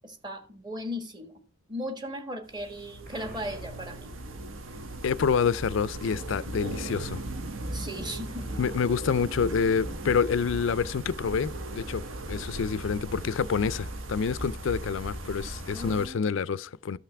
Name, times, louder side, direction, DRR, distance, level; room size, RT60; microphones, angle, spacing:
voice 1, 0.0-1.4 1.7-4.1 7.7-8.6 15.7-16.3, equal, 20° right, 1.4 m, -37 dB
sound 1, 2.5-16.1, right 1 dB, 80° right, 1.2 m, -37 dB
Explosion, 3.0-4.9, equal, 55° right, 3.5 m, -48 dB
voice 2, 5.0-7.2 8.6-17.0, left 6 dB, 65° left, 0.4 m, -27 dB
13.0 x 5.8 x 3.3 m
head